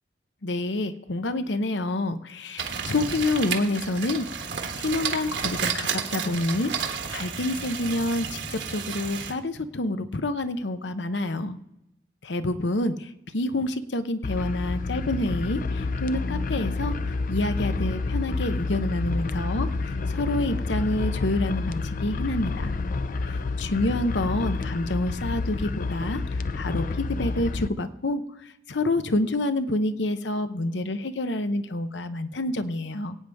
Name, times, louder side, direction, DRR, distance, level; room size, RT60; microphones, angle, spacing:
voice 1, 0.4-4.3 4.8-11.6 12.2-22.8 23.3-33.2, left 2 dB, 70° left, 11 dB, 0.8 m, -28 dB
sound 1, 2.6-9.3, right 6 dB, 70° right, 1.5 m, -31 dB
sound 2, 14.2-27.7, left 3 dB, 45° left, 0.5 m, -29 dB
23.5 x 9.2 x 3.5 m, 0.87 s
head